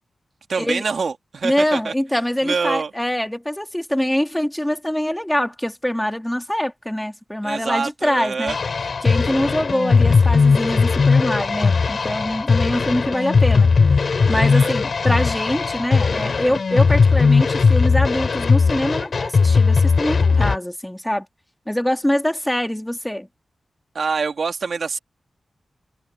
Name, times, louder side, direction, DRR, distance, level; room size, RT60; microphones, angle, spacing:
voice 1, 0.5-1.9 2.4-2.9 7.4-8.6 14.3-14.7 23.9-25.0, right 5 dB, 65° right, 2.4 m, -25 dB
voice 2, 1.4-8.5 9.0-21.3 21.7-23.3, left 1 dB, 5° left, 2.2 m, -24 dB
sound 1, 8.5-20.6, left 4 dB, 60° left, 3.4 m, -18 dB
wide cardioid pair, 100°, 0 cm